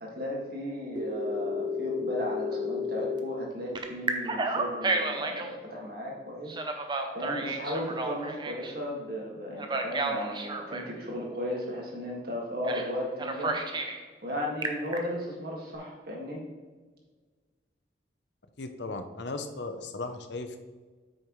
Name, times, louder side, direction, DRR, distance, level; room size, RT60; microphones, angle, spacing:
voice 1, 0.0-6.6 7.1-13.6 14.2-16.4, equal, 55° right, -2 dB, 1.9 m, -35 dB
Telephone, 1.0-3.2 3.7-5.5 6.5-8.7 9.6-10.9 12.6-12.9 13.2-14.0 14.4-15.0, right 1 dB, 25° right, 0.7 m, -31 dB
voice 2, 18.6-20.6, left 3 dB, 75° left, 7 dB, 0.7 m, -36 dB
8.5 x 6.4 x 3.1 m, 1.4 s
head